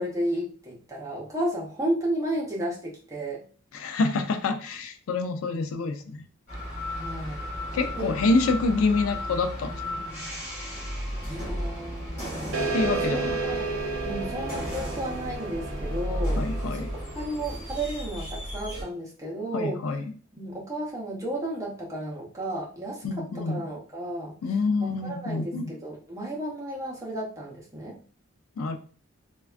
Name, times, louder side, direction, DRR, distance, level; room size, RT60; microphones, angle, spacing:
voice 1, 0.0-3.4 6.9-7.5 8.0-8.1 10.6-10.8 11.2-12.6 13.1-13.7 14.0-16.4 16.7-16.8 17.1-19.8 20.3-24.3 24.8-28.0, right 1 dB, 15° right, -4 dB, 0.6 m, -33 dB
voice 2, 3.7-6.2 7.7-10.0 12.7-13.4 16.4-16.9 19.5-20.0 23.0-23.6 24.4-25.7 28.6-28.8, left 3 dB, 80° left, 8 dB, 0.4 m, -27 dB
sound 1, 6.5-18.8, equal, 30° left, 1.4 m, -34 dB
sound 2, 12.5-17.6, right 3 dB, 60° right, 0.4 m, -32 dB
3.2 x 2.2 x 2.4 m, 0.41 s
head